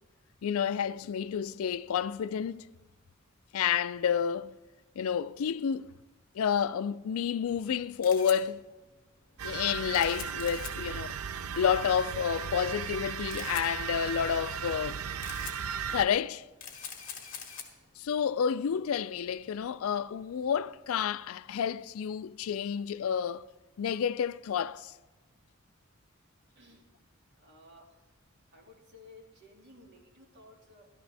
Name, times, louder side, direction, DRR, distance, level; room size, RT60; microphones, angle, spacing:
voice 1, 0.4-2.7 3.5-4.5 5.0-5.9 6.3-8.6 9.4-11.2 11.6-15.0 15.9-16.4 18.0-23.4 23.8-24.9, left 8 dB, 75° left, 0.4 m, -30 dB
Camera, 7.9-21.0, left 7 dB, 40° left, 1.8 m, -48 dB
sound 1, 9.4-16.1, right 7 dB, 90° right, 0.5 m, -36 dB
voice 2, 26.5-26.9 27.3-28.1 28.5-30.9, left 2 dB, 55° right, 2.4 m, -56 dB
14.5 x 13.0 x 3.4 m
head